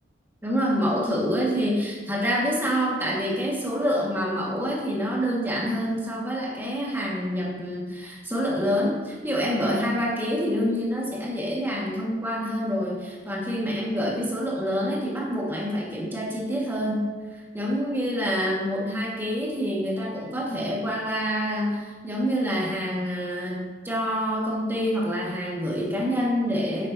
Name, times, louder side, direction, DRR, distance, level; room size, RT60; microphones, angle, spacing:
voice 1, 0.4-26.9, equal, 10° right, -5 dB, 1.7 m, -27 dB
10.0 x 6.8 x 2.8 m, 1.4 s
head